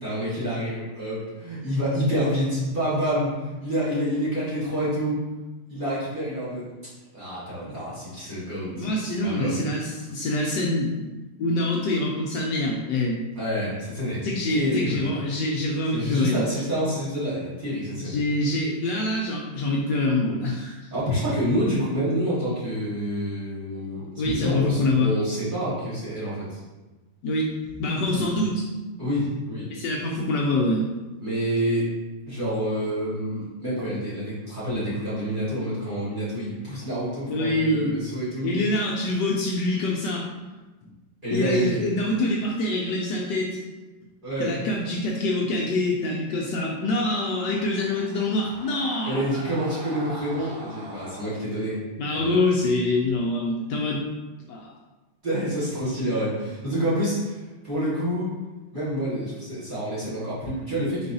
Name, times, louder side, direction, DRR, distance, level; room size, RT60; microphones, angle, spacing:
voice 1, 0.0-5.2 5.7-6.7 7.1-8.9 9.2-9.6 13.3-14.2 14.5-15.1 15.9-18.2 20.5-20.6 20.9-26.6 28.0-28.3 29.0-29.7 31.2-31.9 32.2-38.5 41.2-41.8 44.2-44.5 49.0-51.8 52.1-52.4 55.2-58.3 58.7-61.1, equal, 25° right, -11 dB, 1.6 m, -28 dB
voice 2, 8.7-11.1 11.4-13.2 14.2-16.4 18.0-20.8 24.2-25.2 27.2-28.6 29.7-30.9 37.3-38.0 38.4-40.3 41.3-43.6 44.4-49.2 52.0-54.0 54.5-54.7, left 2 dB, 75° left, -2 dB, 1.1 m, -25 dB
sound 1, 46.9-51.3, right 2 dB, 70° right, 1.4 m, -42 dB
4.5 x 4.1 x 2.6 m, 1.2 s
omnidirectional pair, 2.1 m